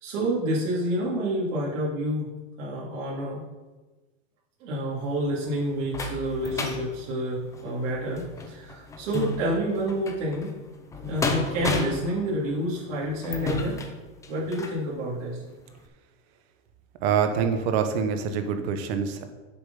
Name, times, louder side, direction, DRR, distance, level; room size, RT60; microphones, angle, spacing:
voice 1, 0.0-2.3 2.6-3.4 4.6-10.5 11.0-13.8 14.3-15.4, right 1 dB, 65° right, -6 dB, 3.0 m, -28 dB
sound 1, 5.0-14.8 15.4-15.5 15.9-16.0, left 3 dB, 10° left, 0.5 m, -33 dB
voice 2, 17.0-19.2, right 7 dB, 50° right, 7 dB, 1.3 m, -25 dB
7.6 x 7.6 x 5.6 m, 1.2 s
supercardioid pair, 155°, 40 cm